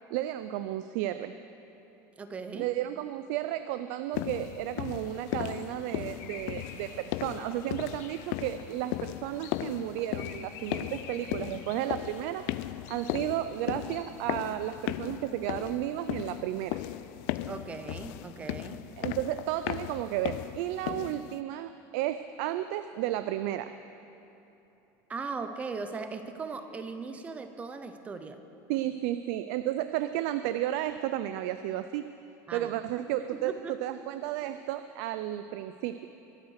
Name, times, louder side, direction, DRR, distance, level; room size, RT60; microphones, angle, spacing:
voice 1, 0.1-1.3 2.5-12.4 12.9-16.8 19.0-23.7 28.7-32.0 32.5-36.1, right 13 dB, 65° right, 11 dB, 0.4 m, -33 dB
voice 2, 2.2-2.7 17.5-18.9 25.1-28.4 32.5-32.8 33.3-33.8, right 4 dB, 15° right, 9 dB, 0.7 m, -38 dB
sound 1, 4.1-21.4, left 15 dB, 60° left, 0.4 m, -37 dB
sound 2, 5.0-14.1, left 7 dB, 75° left, 1.3 m, -50 dB
23.0 x 8.1 x 6.5 m, 3.0 s
cardioid pair, 175°, 9 cm